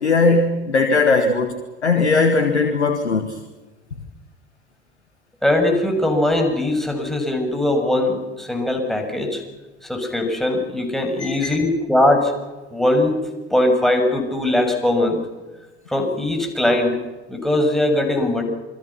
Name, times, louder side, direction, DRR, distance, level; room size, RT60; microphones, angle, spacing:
voice 1, 0.0-3.4 11.2-11.6, left 3 dB, 80° left, 6 dB, 1.9 m, -19 dB
voice 2, 5.4-9.4 9.8-12.3 12.7-13.2 13.5-15.3 15.9-17.0 17.3-18.4, left 1 dB, ahead, 3 dB, 6.9 m, -20 dB
28.0 x 23.5 x 6.0 m, 1.2 s
figure-of-eight pair, 65°, 33 cm